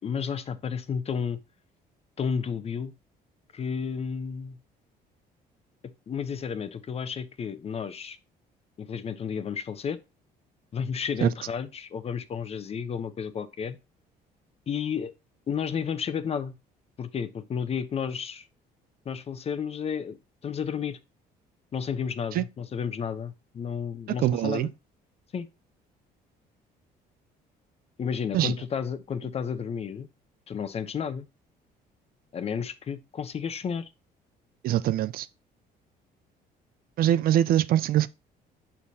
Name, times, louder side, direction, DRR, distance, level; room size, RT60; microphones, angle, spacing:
voice 1, 0.0-1.4 2.2-2.9 3.5-4.6 6.1-8.2 8.8-10.0 10.7-13.8 14.7-15.1 15.5-16.5 17.0-18.5 19.0-20.2 20.4-21.0 21.7-24.7 25.3-25.5 28.0-30.1 30.5-31.2 32.3-33.9, left 7 dB, 35° left, 0.7 m, -32 dB
voice 2, 24.2-24.7 28.3-28.5 34.6-35.3 37.0-38.1, right 12 dB, 60° right, 0.4 m, -23 dB
6.5 x 5.6 x 2.7 m
cardioid pair, 110°, 17 cm